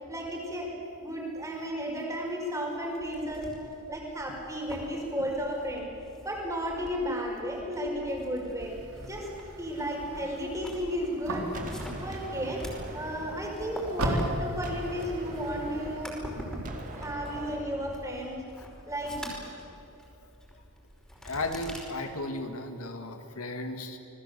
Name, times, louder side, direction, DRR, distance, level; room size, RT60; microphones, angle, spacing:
voice 1, 0.1-0.7 1.0-3.5 3.9-5.9 6.2-8.8 9.1-9.3 9.6-11.5 12.0-12.7 12.9-16.2 16.9-18.4 18.9-19.2, equal, 15° right, 0 dB, 5.3 m, -33 dB
sound 1, 3.0-21.8, equal, 5° left, 5.3 m, -45 dB
sound 2, 8.6-17.1, right 1 dB, 90° right, 3.8 m, -38 dB
Gunshot gunfire, 11.5-14.3 14.6-18.2, right 1 dB, 35° right, 2.5 m, -42 dB
voice 2, 21.2-24.0, left 2 dB, 80° left, 6 dB, 2.2 m, -35 dB
27.5 x 20.0 x 8.3 m, 2.8 s
head